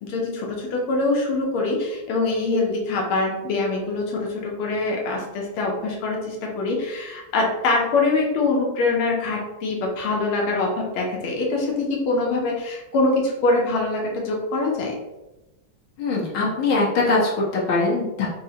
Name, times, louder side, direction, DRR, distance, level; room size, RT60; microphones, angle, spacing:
voice 1, 0.0-14.9, left 3 dB, 85° left, -1 dB, 1.5 m, -24 dB
voice 2, 16.0-18.3, left 3 dB, 65° left, -5 dB, 1.5 m, -22 dB
4.7 x 2.0 x 2.7 m, 1.0 s
omnidirectional pair, 2.3 m